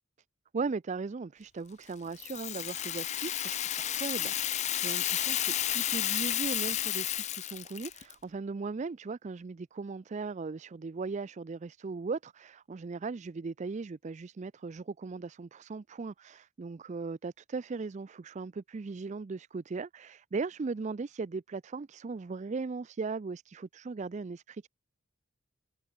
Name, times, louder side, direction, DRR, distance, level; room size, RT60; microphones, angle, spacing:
voice 1, 0.5-24.7, right 4 dB, 35° right, 0.4 m, -38 dB
Rattle (instrument), 2.2-8.2, left 12 dB, 30° left, 0.5 m, -32 dB
head